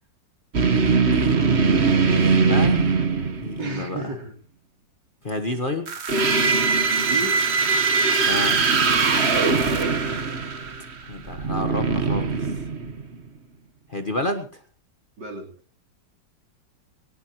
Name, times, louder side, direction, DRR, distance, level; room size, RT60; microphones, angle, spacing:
sound 1, 0.5-3.8 5.9-13.2, right 4 dB, 40° right, 1.4 m, -21 dB
voice 1, 0.7-1.3 1.6-3.1 3.4-4.1 5.2-5.9 8.3-8.8 11.1-12.6 13.9-14.6, left 2 dB, 30° left, 6 dB, 1.4 m, -30 dB
voice 2, 3.6-4.3 7.0-7.4 9.3-9.9 15.2-15.5, right 2 dB, 70° right, 3 dB, 3.9 m, -32 dB
20.0 x 18.0 x 3.1 m, 0.37 s
omnidirectional pair, 2.0 m